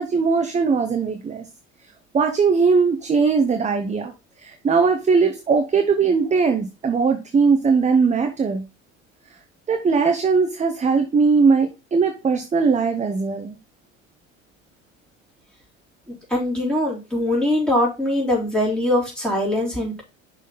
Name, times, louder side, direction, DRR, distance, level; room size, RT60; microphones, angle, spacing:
voice 1, 0.0-1.4 2.1-4.1 4.4-8.6 9.7-13.6, right 5 dB, 20° right, 6 dB, 0.8 m, -19 dB
voice 2, 16.3-20.0, left 1 dB, ahead, -3 dB, 3.8 m, -22 dB
6.2 x 4.2 x 5.5 m, 0.28 s
figure-of-eight pair, 65°, 40 cm